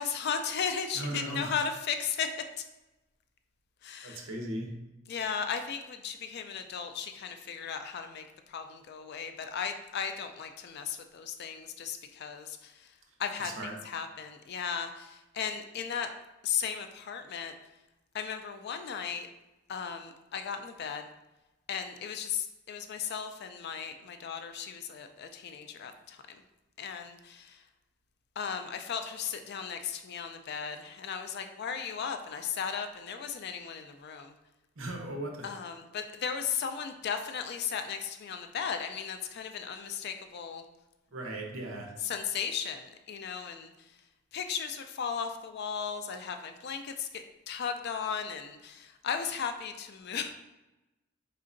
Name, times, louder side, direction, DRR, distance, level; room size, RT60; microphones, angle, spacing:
voice 1, 0.0-2.3 2.6-2.7 3.8-4.2 5.1-12.9 13.2-16.1 16.4-17.5 18.1-19.3 19.7-21.1 21.7-26.4 26.8-27.6 28.4-34.3 35.4-40.6 42.0-43.7 44.3-50.3, left 7 dB, 50° left, 7 dB, 0.3 m, -36 dB
voice 2, 0.9-1.6 4.0-4.7 13.4-13.8 34.8-35.6 41.1-41.9, right 1 dB, 70° right, 1 dB, 0.8 m, -37 dB
4.2 x 3.7 x 2.5 m, 1.0 s
head